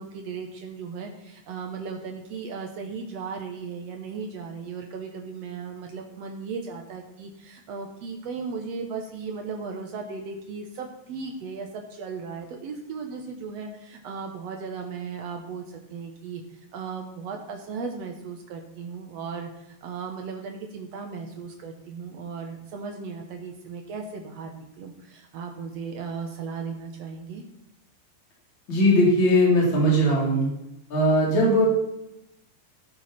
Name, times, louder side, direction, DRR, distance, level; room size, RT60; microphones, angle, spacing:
voice 1, 0.0-27.4, right 5 dB, 85° right, 3 dB, 1.4 m, -36 dB
voice 2, 28.7-30.5 30.9-31.7, equal, 30° left, -3 dB, 3.6 m, -19 dB
15.0 x 6.2 x 5.8 m, 0.86 s
omnidirectional pair, 4.5 m